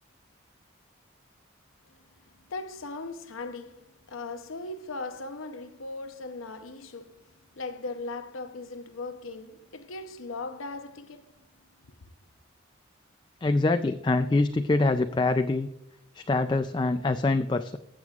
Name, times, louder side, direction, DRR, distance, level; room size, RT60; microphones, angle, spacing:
voice 1, 2.5-7.2 7.6-11.3, left 3 dB, 90° left, 0.7 m, -38 dB
voice 2, 13.4-15.7 16.2-17.8, left 2 dB, 20° left, 0.3 m, -25 dB
16.0 x 7.9 x 2.4 m
head